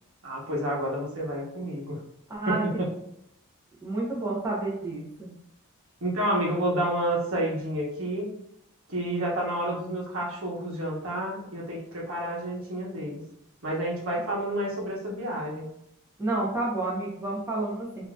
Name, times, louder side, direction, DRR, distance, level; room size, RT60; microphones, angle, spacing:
voice 1, 0.2-2.0 2.5-2.9 6.0-8.3 8.9-13.2 13.6-15.7, right 1 dB, 65° right, -4 dB, 1.1 m, -29 dB
voice 2, 2.3-2.8 3.8-5.3 16.2-18.1, right 2 dB, 15° right, -6 dB, 0.9 m, -30 dB
3.8 x 2.7 x 2.4 m, 0.77 s
head